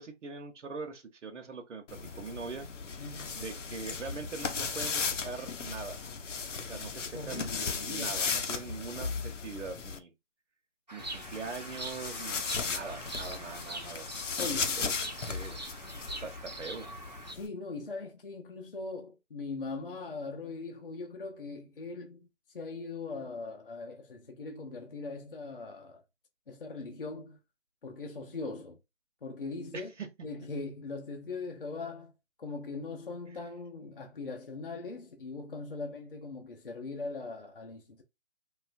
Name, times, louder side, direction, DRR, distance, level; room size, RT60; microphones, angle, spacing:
voice 1, 0.0-1.8 2.2-2.7 3.3-6.0 6.6-7.6 7.9-10.1 10.9-14.1 14.8-15.7 16.2-16.9 29.7-30.1 33.3-33.4, right 4 dB, 80° right, 0.8 m, -42 dB
sound 1, 1.9-10.0 11.0-17.5, left 5 dB, 85° left, 0.7 m, -36 dB
voice 2, 3.0-3.4 7.1-8.2 14.4-14.8 15.9-16.0 17.3-26.0 26.5-27.4 27.8-28.8 29.2-29.9 30.2-32.1 32.4-38.0, left 3 dB, 50° left, 0.6 m, -40 dB
Bird vocalization bird call bird song, 10.9-17.3, right 1 dB, 35° right, 0.5 m, -43 dB
3.2 x 2.4 x 2.4 m
hypercardioid pair, 180°, 36 cm